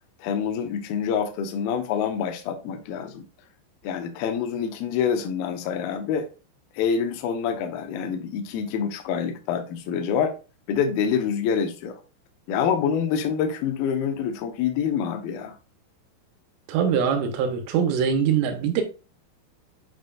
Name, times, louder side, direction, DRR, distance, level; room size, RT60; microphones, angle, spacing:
voice 1, 0.2-3.2 3.8-6.3 6.8-10.3 10.7-12.0 12.5-15.6, left 7 dB, 90° left, 2.1 m, -26 dB
voice 2, 16.7-18.8, right 7 dB, 85° right, 3.4 m, -23 dB
8.9 x 4.6 x 2.4 m
omnidirectional pair, 5.7 m